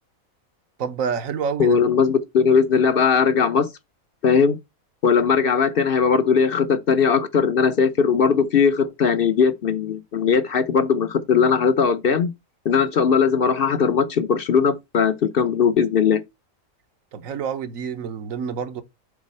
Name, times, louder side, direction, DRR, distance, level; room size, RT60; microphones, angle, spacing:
voice 1, 0.8-1.8 17.1-18.8, right 6 dB, 70° right, 1.3 m, -28 dB
voice 2, 1.6-3.7 4.2-4.6 5.0-12.3 12.6-16.2, left 6 dB, 50° left, 0.8 m, -19 dB
7.3 x 4.2 x 5.4 m
omnidirectional pair, 1.5 m